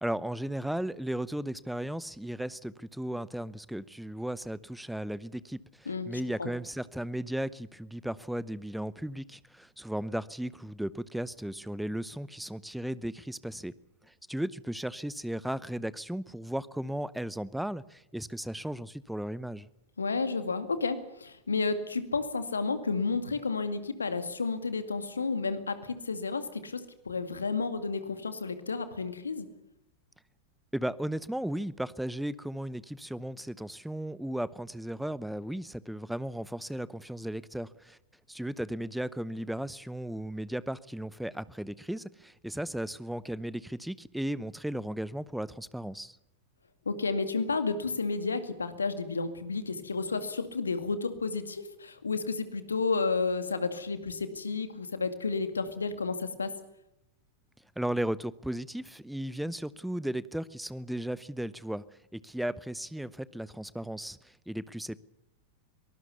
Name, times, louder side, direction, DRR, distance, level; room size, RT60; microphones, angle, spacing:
voice 1, 0.0-13.7 14.1-19.7 30.7-38.0 38.3-46.2 57.8-61.8 62.1-65.0, right 1 dB, ahead, 20 dB, 0.8 m, -35 dB
voice 2, 5.9-6.5 20.0-29.5 46.9-56.6, left 4 dB, 75° left, 10 dB, 2.2 m, -31 dB
23.5 x 19.0 x 6.9 m, 0.83 s
figure-of-eight pair, 90°, 0 cm